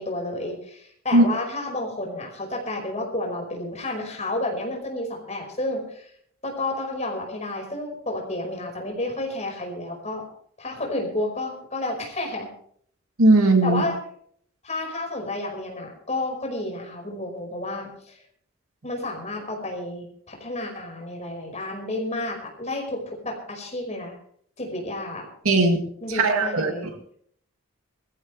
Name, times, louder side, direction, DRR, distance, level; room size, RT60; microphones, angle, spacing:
voice 1, 0.0-6.1 6.4-10.2 10.6-12.5 13.6-13.9 14.6-18.2 18.8-24.1 24.6-25.3 26.0-26.9, left 2 dB, 30° left, 1 dB, 5.3 m, -31 dB
voice 2, 13.2-13.9 25.4-25.8 26.1-26.7, right 2 dB, 85° right, 4 dB, 2.4 m, -18 dB
21.5 x 15.0 x 3.4 m, 0.62 s
head